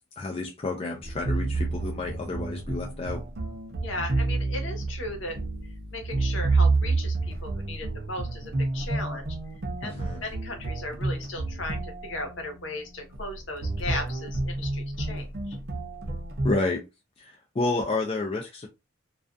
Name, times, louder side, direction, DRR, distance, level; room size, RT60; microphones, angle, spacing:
voice 1, 0.2-3.2 9.8-10.2 16.4-16.8 17.2-18.7, left 3 dB, 30° left, 0.4 m, -30 dB
sound 1, 1.0-16.6, right 3 dB, 50° right, 0.6 m, -29 dB
voice 2, 3.8-5.4 5.9-9.4 9.8-15.6, left 2 dB, 65° left, 0.8 m, -36 dB
2.3 x 2.3 x 2.4 m
head